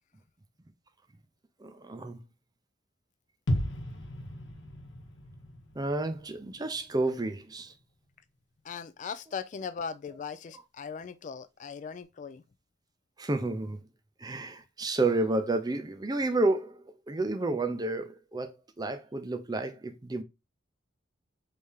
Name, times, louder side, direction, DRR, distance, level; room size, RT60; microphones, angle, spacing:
voice 1, 1.6-2.2 5.8-7.7 13.2-13.8 14.2-16.8 17.1-20.2, right 2 dB, 20° right, 0.5 m, -30 dB
sound 1, 3.5-7.4 7.7-7.8, left 1 dB, 70° left, 1.0 m, -36 dB
voice 2, 8.6-12.4, left 6 dB, 40° left, 0.3 m, -39 dB
4.2 x 3.4 x 3.6 m
head